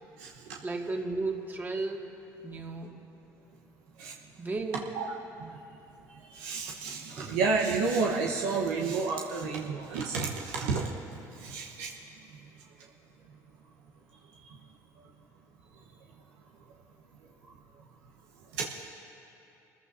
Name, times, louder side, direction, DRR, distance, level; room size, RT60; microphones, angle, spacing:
voice 1, 0.6-2.2 2.4-3.0 4.4-4.9 7.2-7.3, right 3 dB, 25° right, 1 dB, 1.9 m, -34 dB
voice 2, 6.3-10.9 11.4-11.9 18.6-18.7, right 4 dB, 90° right, -2 dB, 1.0 m, -30 dB
24.0 x 14.5 x 2.7 m, 2.9 s
supercardioid pair, 80°, 8 cm